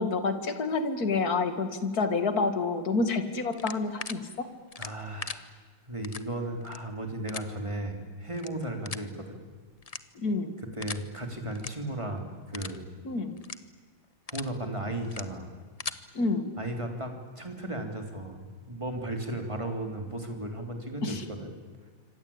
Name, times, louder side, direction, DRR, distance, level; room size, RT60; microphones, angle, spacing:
voice 1, 0.0-4.5 10.2-10.5 13.0-13.3 16.1-16.5 21.0-21.2, left 3 dB, 50° left, 9 dB, 2.5 m, -28 dB
sound 1, 3.5-4.1 4.7-5.4 6.0-6.2 6.6-6.8 7.3-7.4 8.3-8.5 8.8-9.1 9.8-10.3 10.8-11.0 11.5-11.7 12.1-12.2 12.5-12.8 13.4-13.6 14.0-14.5 15.0-15.2 15.6-16.0, left 4 dB, 35° left, 0.6 m, -38 dB
voice 2, 4.8-5.5 5.9-9.4 10.6-12.9 14.3-15.5 16.6-21.5, right 1 dB, 15° right, 4 dB, 3.5 m, -35 dB
26.0 x 25.5 x 8.8 m, 1.5 s
omnidirectional pair, 2.0 m